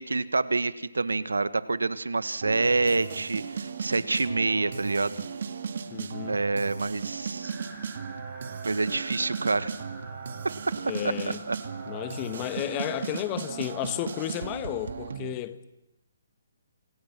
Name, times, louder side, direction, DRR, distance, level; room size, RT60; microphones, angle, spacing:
voice 1, 0.0-5.2 6.3-7.5 8.6-9.7 11.5-11.6, right 3 dB, 90° right, 1.5 m, -27 dB
sound 1, 2.4-15.3, right 6 dB, 60° right, 2.2 m, -36 dB
voice 2, 5.9-6.4 10.8-11.4 11.9-15.6, left 13 dB, 25° left, 1.4 m, -33 dB
sound 2, 7.4-14.7, right 1 dB, ahead, 7.7 m, -48 dB
28.0 x 27.0 x 6.0 m
hypercardioid pair, 145°, 0 cm